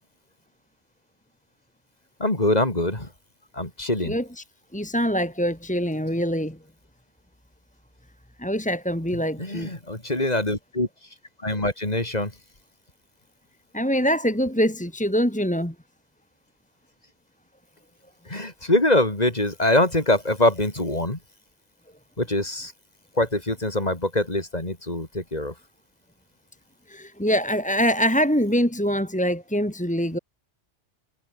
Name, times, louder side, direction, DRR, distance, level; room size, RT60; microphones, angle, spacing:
voice 1, 2.2-3.1 3.5-4.2 9.4-10.9 11.4-12.3 18.3-21.2 22.2-22.7 23.2-25.5, left 1 dB, 35° left, 3.9 m, -23 dB
voice 2, 4.1-4.4 4.7-6.6 8.4-9.7 13.7-15.7 26.9-30.2, equal, 5° left, 2.4 m, -24 dB
omnidirectional pair, 1.2 m